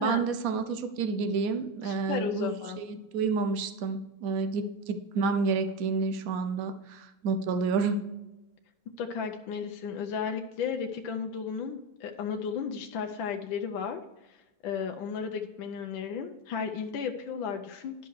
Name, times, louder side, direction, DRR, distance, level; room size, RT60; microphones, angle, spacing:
voice 1, 0.0-2.5 2.8-8.0, right 4 dB, 65° right, 9 dB, 0.9 m, -29 dB
voice 2, 1.8-2.8 9.0-14.0 14.3-14.4 14.6-17.9, left 6 dB, 75° left, 4 dB, 1.4 m, -34 dB
11.0 x 5.7 x 4.7 m, 1.0 s
omnidirectional pair, 2.3 m